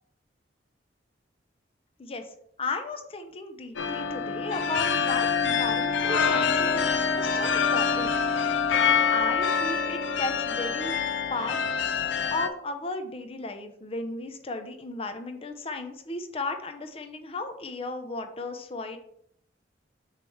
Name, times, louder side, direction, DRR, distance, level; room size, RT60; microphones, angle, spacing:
voice 1, 2.0-2.3 2.6-8.5 8.8-12.0 12.3-19.0, left 2 dB, 30° left, 7 dB, 0.6 m, -35 dB
sound 1, 3.8-12.5, left 6 dB, 90° left, 0.5 m, -25 dB
6.6 x 3.1 x 4.6 m, 0.70 s
head